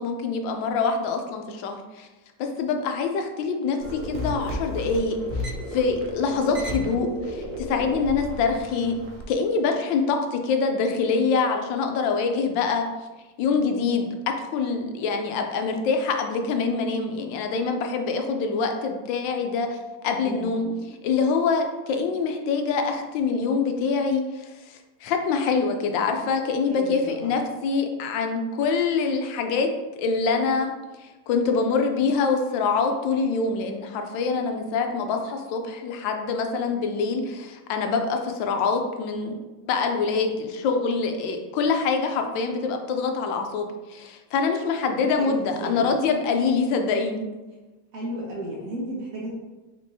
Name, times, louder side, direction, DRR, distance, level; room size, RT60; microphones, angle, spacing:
voice 1, 0.0-2.1 2.4-9.0 9.3-12.9 13.4-19.8 20.0-20.6 21.0-29.7 30.0-30.7 31.0-39.4 39.6-47.3, left 4 dB, 85° left, 5 dB, 1.3 m, -25 dB
sound 1, 3.8-9.2, left 1 dB, 75° right, 1.5 m, -33 dB
voice 2, 20.1-20.7 26.7-27.3 45.2-45.8 47.9-49.3, right 1 dB, 55° right, -3 dB, 1.3 m, -34 dB
5.2 x 3.4 x 2.7 m, 1.2 s
omnidirectional pair, 2.0 m